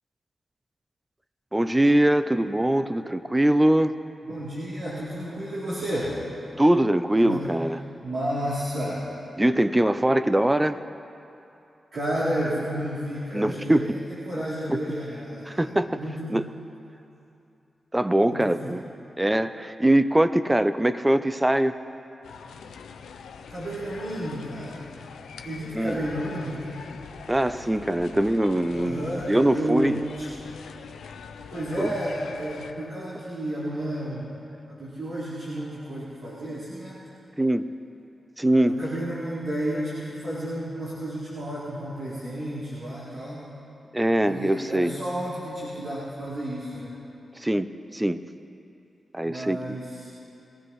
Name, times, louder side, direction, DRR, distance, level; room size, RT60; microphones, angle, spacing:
voice 1, 1.5-3.9 6.6-7.8 9.4-10.8 13.3-13.9 14.7-14.8 15.5-16.0 16.3-16.5 17.9-18.8 19.2-21.7 25.7-26.0 27.3-30.0 31.8-31.9 37.4-37.7 38.4-38.7 43.9-44.9 47.4-47.7 47.9-48.2 49.1-49.8, right 1 dB, 15° right, 12 dB, 0.7 m, -22 dB
voice 2, 4.2-6.2 7.2-7.5 8.0-9.0 11.9-14.0 14.2-15.7 15.9-16.4 18.3-18.7 23.5-24.8 25.4-26.8 28.7-30.3 31.5-34.3 34.7-37.0 38.6-43.5 44.2-47.0 49.2-50.1, right 1 dB, 75° right, -12 dB, 4.3 m, -31 dB
sound 1, 22.2-32.7, left 6 dB, 85° left, 0.6 m, -43 dB
22.5 x 15.5 x 3.2 m, 2.8 s
supercardioid pair, 40°, 0 cm